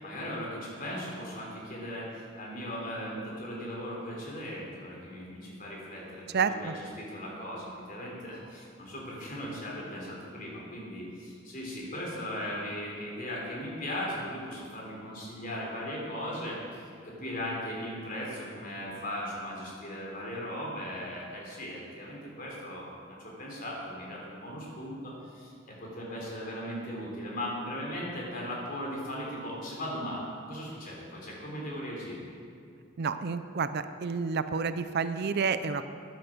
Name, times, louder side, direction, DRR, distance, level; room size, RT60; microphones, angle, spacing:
voice 1, 0.0-32.2, equal, 45° left, -3 dB, 3.5 m, -38 dB
voice 2, 6.3-6.7 33.0-35.8, right 5 dB, 55° right, 11 dB, 0.5 m, -29 dB
14.0 x 10.5 x 5.1 m, 2.5 s
head